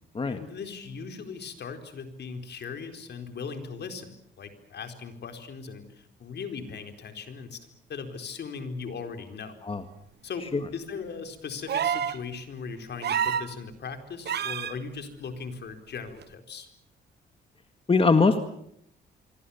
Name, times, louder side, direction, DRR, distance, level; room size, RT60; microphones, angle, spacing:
voice 1, 0.2-7.6 7.9-9.6 10.2-16.7, left 5 dB, 60° left, 7 dB, 4.3 m, -39 dB
sound 1, 11.7-12.2 13.0-13.5 14.3-14.7 16.2-16.3, right 8 dB, 55° right, 1.3 m, -27 dB
voice 2, 17.9-18.4, left 4 dB, 25° left, 8 dB, 1.9 m, -21 dB
26.0 x 25.0 x 7.2 m, 0.71 s
cardioid pair, 90°, 20 cm